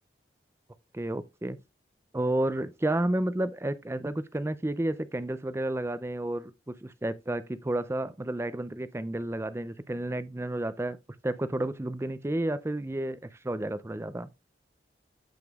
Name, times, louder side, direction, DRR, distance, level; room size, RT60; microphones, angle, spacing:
voice 1, 0.9-1.6 2.1-11.0 11.2-14.3, right 1 dB, 15° right, 0.4 m, -31 dB
14.0 x 5.2 x 2.4 m
head